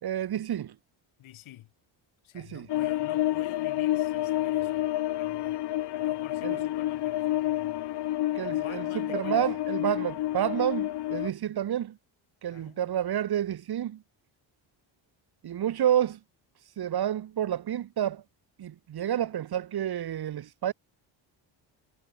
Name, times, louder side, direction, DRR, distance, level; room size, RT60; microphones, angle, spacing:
voice 1, 0.0-0.7 2.3-2.7 6.4-6.6 8.3-12.0 12.4-14.0 15.4-16.2 16.8-18.2 18.6-20.7, right 10 dB, 50° right, 1.4 m, -29 dB
voice 2, 1.2-1.7 2.2-4.9 5.2-5.6 5.9-8.3 8.5-9.5 12.5-13.0, left 14 dB, 80° left, 3.5 m, -49 dB
sound 1, 2.7-11.3, left 14 dB, 60° left, 0.8 m, -29 dB
cardioid pair, 100°, 47 cm